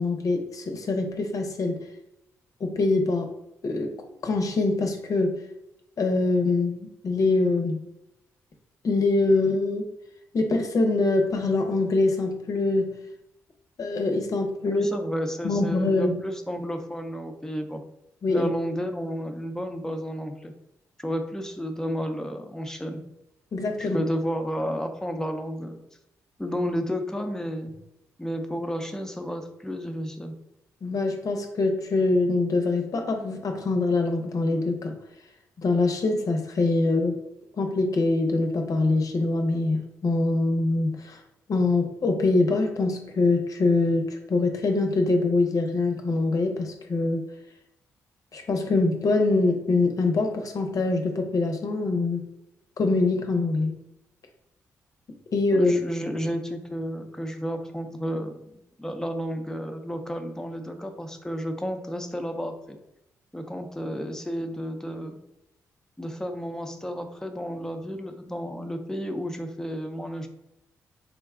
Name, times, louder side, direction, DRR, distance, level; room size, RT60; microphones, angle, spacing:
voice 1, 0.0-1.8 2.6-3.3 3.6-3.9 4.2-5.4 6.0-7.8 8.8-9.9 10.3-13.0 13.8-14.9 15.4-16.2 18.2-18.5 23.5-24.1 30.8-35.0 35.6-37.2 37.6-41.2 41.5-47.3 48.3-52.3 52.8-53.8 55.3-55.8, left 3 dB, 55° left, 4 dB, 0.8 m, -24 dB
voice 2, 14.7-17.9 18.3-20.5 21.0-23.0 23.8-25.8 26.4-27.7 28.2-30.4 55.5-62.8 63.3-65.2 66.0-70.3, equal, 10° left, 5 dB, 0.7 m, -32 dB
3.8 x 2.2 x 3.6 m, 0.85 s
supercardioid pair, 45°, 7 cm